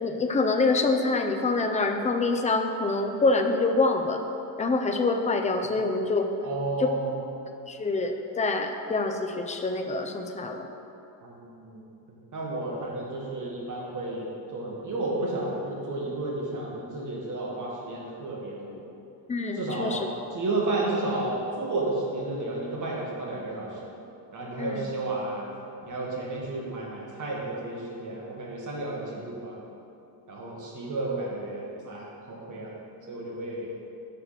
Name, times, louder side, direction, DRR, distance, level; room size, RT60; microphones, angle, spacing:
voice 1, 0.0-4.2 4.6-6.3 6.8-6.9 7.7-10.7 19.3-20.1 24.6-24.8, left 3 dB, 15° left, 5 dB, 0.3 m, -26 dB
voice 2, 6.4-7.2 11.2-18.8 19.5-23.8 24.3-25.5 25.8-29.6 30.3-32.7 33.1-33.7, right 2 dB, 40° right, -3 dB, 1.7 m, -32 dB
6.4 x 5.8 x 5.0 m, 2.7 s
cardioid pair, 125°, 48 cm